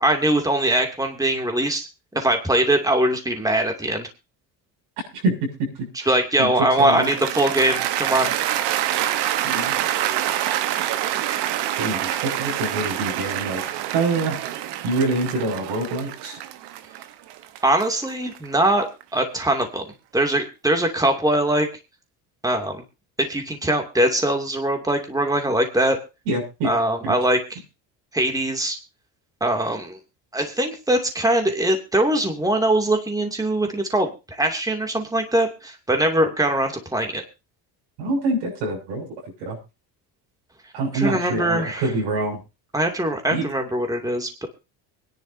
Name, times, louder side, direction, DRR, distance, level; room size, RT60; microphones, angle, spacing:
voice 1, 0.0-1.9 2.1-4.1 6.1-8.3 17.6-18.8 19.1-19.9 20.1-21.7 22.4-22.8 23.2-26.0 26.6-27.6 28.1-28.8 29.4-30.0 30.3-37.2 40.9-41.9 42.7-44.5, right 1 dB, 10° right, 3 dB, 2.6 m, -22 dB
voice 2, 5.0-6.1 6.4-6.5 6.8-7.1 9.4-9.8 11.8-13.6 13.9-14.4 14.8-16.4 26.3-26.7 27.0-27.1 38.0-39.1 39.4-39.6 40.7-42.4 43.3-43.5, right 2 dB, 90° right, 1 dB, 7.0 m, -25 dB
Cheering / Applause, 6.8-19.0, right 12 dB, 75° right, 1.2 m, -26 dB
23.5 x 10.5 x 2.8 m, 0.28 s
supercardioid pair, 90°, 42 cm